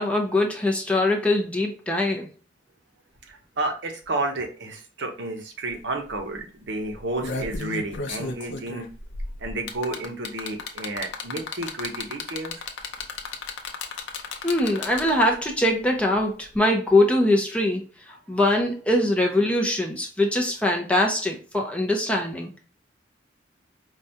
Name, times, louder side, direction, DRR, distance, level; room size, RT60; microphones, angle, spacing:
voice 1, 0.0-2.3 14.4-22.5, left 1 dB, 5° left, 0 dB, 0.5 m, -22 dB
voice 2, 3.3-8.9 9.4-12.5, right 2 dB, 65° right, 3 dB, 0.7 m, -31 dB
sound 1, 5.7-5.8 6.1-6.3 6.9-15.3 16.5-16.6, left 4 dB, 65° left, 0.5 m, -34 dB
4.7 x 2.2 x 2.6 m, 0.35 s
head